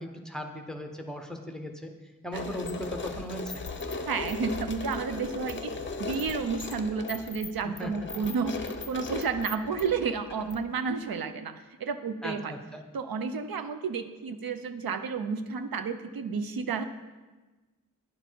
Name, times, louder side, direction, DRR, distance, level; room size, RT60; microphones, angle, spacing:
voice 1, 0.0-1.9 2.2-3.6 7.8-7.9 12.2-12.6, equal, ahead, 4 dB, 0.9 m, -37 dB
sound 1, 2.3-10.8, left 4 dB, 35° left, 0.7 m, -37 dB
voice 2, 4.1-8.5 8.9-11.5 11.8-12.5 12.9-16.8, right 5 dB, 80° right, 10 dB, 0.6 m, -31 dB
10.5 x 7.1 x 4.5 m, 1.2 s
wide cardioid pair, 120°, 35 cm